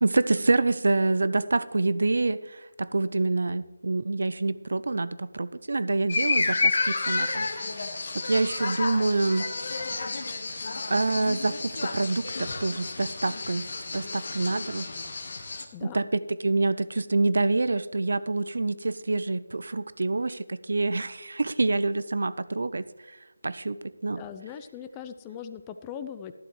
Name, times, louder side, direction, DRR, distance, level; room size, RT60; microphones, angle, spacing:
voice 1, 0.0-7.5 8.1-9.5 10.9-13.7 13.9-14.9 15.8-23.2 23.4-24.2, right 3 dB, 70° right, 16 dB, 0.5 m, -26 dB
sound 1, 6.1-15.6, left 3 dB, 55° left, 1.2 m, -30 dB
voice 2, 24.2-26.3, left 8 dB, 15° left, 10 dB, 0.4 m, -40 dB
13.0 x 12.0 x 3.1 m, 1.2 s
figure-of-eight pair, 165°, 0 cm